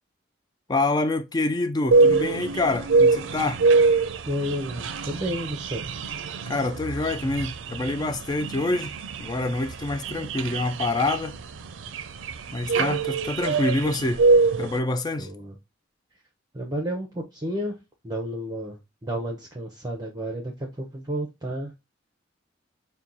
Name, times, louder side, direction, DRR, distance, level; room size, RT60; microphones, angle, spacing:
voice 1, 0.7-3.6 6.5-11.3 12.5-14.2 14.6-15.3, left 2 dB, 20° left, 0.3 m, -26 dB
sound 1, 1.9-14.8, right 4 dB, 85° right, 0.4 m, -24 dB
voice 2, 4.3-5.8 15.2-15.6 16.5-17.7 18.0-21.7, equal, 20° right, 0.7 m, -31 dB
4.4 x 2.2 x 3.9 m
head